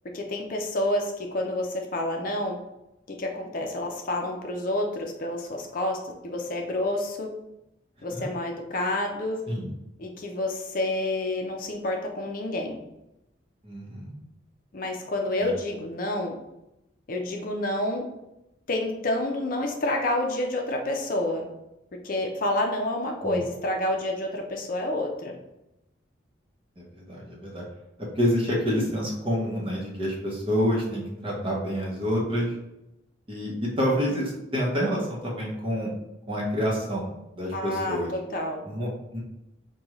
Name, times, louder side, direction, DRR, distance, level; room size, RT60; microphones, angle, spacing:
voice 1, 0.1-2.6 3.1-6.0 6.2-7.3 8.0-9.4 10.0-12.8 14.7-16.4 17.1-18.0 18.7-21.5 22.0-25.3 37.5-38.6, left 1 dB, 45° left, 1 dB, 0.5 m, -29 dB
voice 2, 13.6-14.1 15.4-15.5 23.2-23.4 26.8-27.7 28.0-32.5 33.3-35.9 36.3-38.1 38.6-39.2, equal, 30° right, -3 dB, 0.9 m, -28 dB
5.1 x 2.3 x 3.0 m, 0.90 s
head